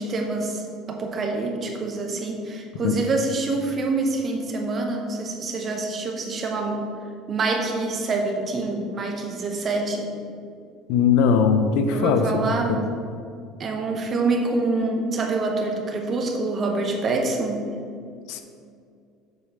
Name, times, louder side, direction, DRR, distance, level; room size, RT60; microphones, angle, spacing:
voice 1, 0.0-6.9 7.3-10.1 11.9-12.8 13.6-17.6, right 3 dB, 30° right, 2 dB, 0.9 m, -26 dB
voice 2, 10.9-12.5 18.3-18.4, left 6 dB, 70° left, 8 dB, 0.6 m, -20 dB
7.6 x 5.1 x 5.1 m, 2.3 s
cardioid pair, 155°, 0 cm